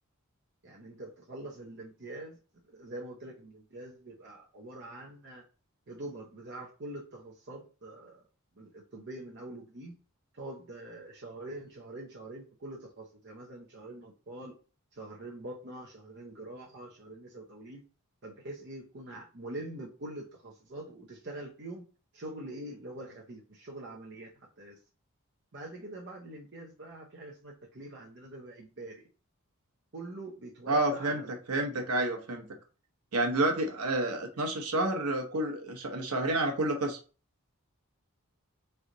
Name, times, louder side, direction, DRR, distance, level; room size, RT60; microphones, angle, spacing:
voice 1, 0.6-2.4 2.7-5.4 5.9-8.2 8.6-10.0 10.3-14.5 14.9-17.8 18.2-21.8 22.1-24.8 25.5-29.0 29.9-31.4, right 1 dB, 50° right, -2 dB, 0.8 m, -44 dB
voice 2, 30.7-32.5 33.1-37.0, right 2 dB, 85° right, 2 dB, 1.0 m, -29 dB
3.8 x 3.4 x 3.9 m, 0.35 s
head